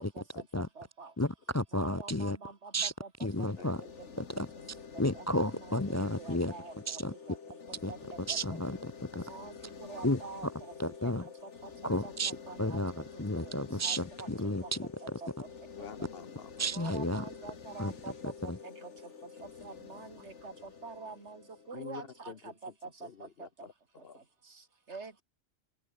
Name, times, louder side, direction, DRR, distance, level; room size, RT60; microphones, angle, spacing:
voice 1, 0.6-1.1 1.7-3.5 3.8-3.9 5.1-7.0 7.3-7.4 7.9-8.6 9.3-10.7 11.0-13.5 13.8-14.7 15.0-15.3 16.7-18.9 19.4-23.3 24.9-25.1, right 4 dB, 75° right, 2.5 m, -47 dB
voice 2, 1.2-2.4 2.7-2.9 3.2-3.8 4.4-4.5 5.0-6.5 6.9-7.1 7.8-7.9 8.3-9.2 10.0-10.2 10.8-11.2 11.8-12.3 12.6-15.2 16.6-17.2 17.8-17.9 18.5-18.6, equal, 15° left, 0.6 m, -32 dB
sound 1, 3.3-22.3, left 6 dB, 80° left, 1.9 m, -49 dB
voice 3, 3.6-3.9 15.8-16.9 21.7-22.5 23.0-23.7 24.0-24.2, left 6 dB, 55° left, 1.2 m, -48 dB
open air
omnidirectional pair, 1.2 m